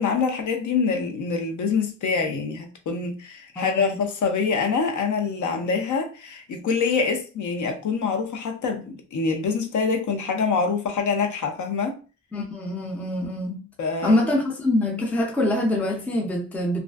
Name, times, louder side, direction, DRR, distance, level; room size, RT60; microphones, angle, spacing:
voice 1, 0.0-12.0 13.8-14.2, left 5 dB, 65° left, 0.5 m, -25 dB
voice 2, 3.6-4.0 12.3-13.6 14.0-16.8, left 1 dB, 5° left, 0.3 m, -24 dB
2.4 x 2.4 x 2.2 m
wide cardioid pair, 180°, 32 cm